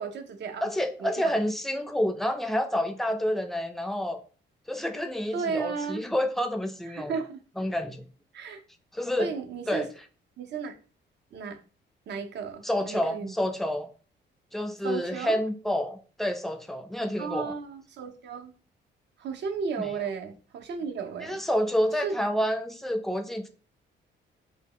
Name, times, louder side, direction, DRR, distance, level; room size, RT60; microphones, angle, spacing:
voice 1, 0.0-0.7 1.0-1.4 5.3-6.0 6.9-7.4 8.3-8.6 9.2-9.9 10.4-10.8 11.3-11.6 12.1-13.3 14.8-15.4 17.2-18.5 19.2-21.4 22.0-22.2, right 5 dB, 60° right, 0.5 m, -34 dB
voice 2, 0.6-4.2 4.7-7.1 7.6-8.0 8.9-9.3 9.7-9.9 12.6-13.9 14.5-17.5 19.8-19.9 21.2-23.5, equal, ahead, 0.4 m, -28 dB
2.1 x 2.0 x 3.6 m
cardioid pair, 90°, 20 cm